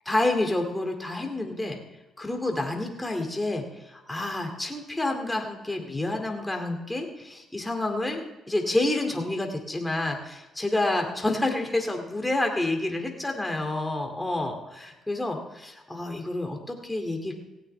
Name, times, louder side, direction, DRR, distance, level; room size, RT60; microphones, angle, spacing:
voice 1, 0.1-1.8 2.2-17.3, left 2 dB, 10° left, 3 dB, 2.3 m, -29 dB
17.0 x 16.5 x 3.3 m, 1.0 s
cardioid pair, 90°, 0 cm